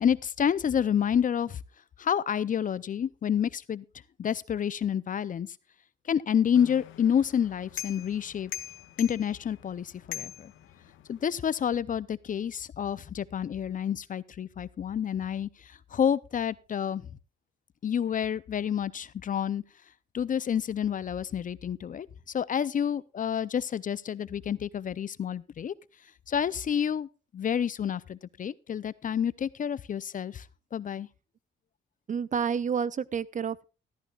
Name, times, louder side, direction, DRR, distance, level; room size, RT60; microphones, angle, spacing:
voice 1, 0.0-1.6 2.0-3.8 4.2-5.5 6.1-8.5 9.0-10.5 11.1-17.0 17.8-19.6 20.1-22.1 22.3-25.7 26.3-27.1 27.3-30.5 30.7-31.1, left 8 dB, 40° left, 0.6 m, -29 dB
sound 1, 6.5-11.2, left 13 dB, 85° left, 1.3 m, -43 dB
voice 2, 32.1-33.6, right 7 dB, 40° right, 0.6 m, -29 dB
14.0 x 13.0 x 2.4 m
cardioid pair, 90°, 20 cm